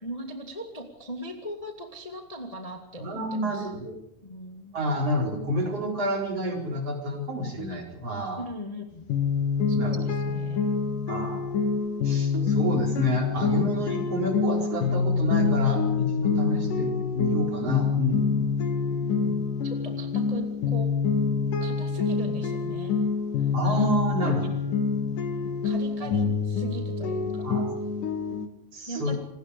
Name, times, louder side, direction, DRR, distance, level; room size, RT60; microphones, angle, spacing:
voice 1, 0.0-3.7 4.2-4.8 8.4-9.1 9.7-10.6 19.0-20.9 21.6-23.0 24.2-24.3 25.6-27.5 28.9-29.2, equal, 15° left, 3 dB, 1.7 m, -39 dB
voice 2, 3.0-4.0 4.7-8.4 9.8-10.0 11.1-11.4 12.0-18.5 23.5-24.5 26.0-26.1 27.4-27.7 28.7-29.2, equal, 45° right, 1 dB, 5.3 m, -29 dB
sound 1, 9.1-28.5, left 5 dB, 70° left, 3.2 m, -26 dB
27.5 x 21.0 x 5.0 m, 0.82 s
omnidirectional pair, 3.9 m